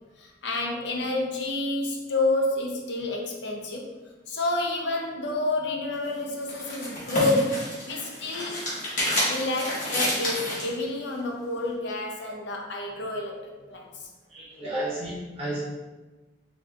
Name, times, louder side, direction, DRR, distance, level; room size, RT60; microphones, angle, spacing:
voice 1, 0.2-3.9 4.3-8.6 9.3-14.1, left 2 dB, 70° left, 0 dB, 0.6 m, -29 dB
sound 1, 5.9-10.7, left 1 dB, 45° left, 1.2 m, -29 dB
voice 2, 14.3-15.6, right 1 dB, 35° right, -8 dB, 0.9 m, -32 dB
4.3 x 2.3 x 2.8 m, 1.2 s
head